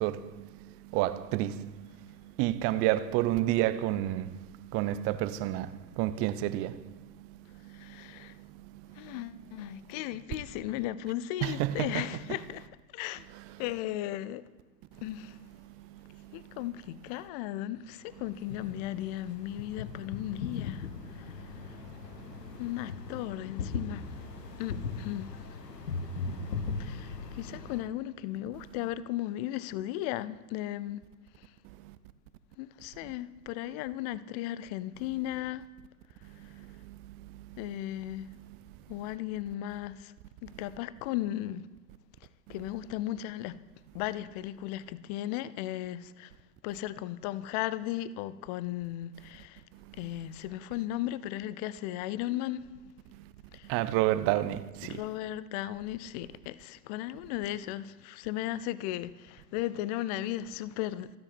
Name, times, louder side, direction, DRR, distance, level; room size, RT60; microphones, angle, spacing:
voice 1, 0.0-9.2 11.4-12.1 13.3-13.4 14.9-15.0 15.8-16.6 21.1-22.6 25.8-25.9 26.4-27.2 31.6-32.0 33.0-33.1 36.2-37.6 38.5-38.6 42.5-42.6 53.1-53.3 53.6-55.0, right 14 dB, 30° right, 0.7 m, -33 dB
voice 2, 7.7-8.3 9.0-12.7 12.9-13.3 13.6-14.4 15.0-15.4 16.3-20.9 21.1-21.3 22.6-24.1 24.6-25.3 26.8-31.0 32.6-35.6 37.6-38.3 38.9-40.1 40.4-41.7 42.5-43.6 43.9-46.3 46.6-49.6 50.0-52.7 53.5-53.7 54.5-61.2, left 14 dB, 25° left, 0.5 m, -36 dB
sound 1, 17.8-27.8, left 5 dB, 75° left, 1.4 m, -39 dB
27.5 x 9.7 x 4.3 m
figure-of-eight pair, 105°, 50 cm